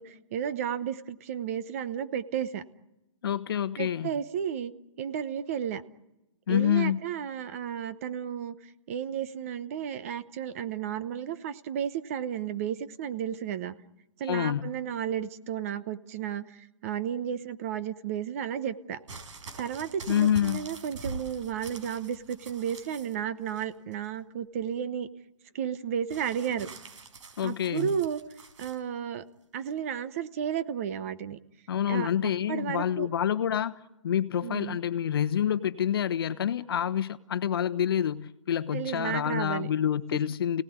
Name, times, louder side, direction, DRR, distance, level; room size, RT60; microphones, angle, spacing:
voice 1, 0.0-2.6 3.8-4.7 5.0-5.8 6.5-13.7 14.2-19.0 19.6-25.1 25.5-26.7 27.4-28.2 28.6-29.2 29.5-31.4 31.9-32.1 32.5-33.1 34.4-34.8 38.7-39.7 40.1-40.2, right 8 dB, 30° right, 0.9 m, -33 dB
voice 2, 3.2-4.1 6.5-7.0 14.3-14.7 20.1-20.6 27.4-27.9 31.7-40.6, left 9 dB, 50° left, 1.0 m, -27 dB
sound 1, 19.1-23.2 23.5-24.1 26.1-28.8 29.7-29.8, right 3 dB, 75° right, 5.0 m, -44 dB
29.0 x 18.5 x 9.6 m
hypercardioid pair, 170°, 16 cm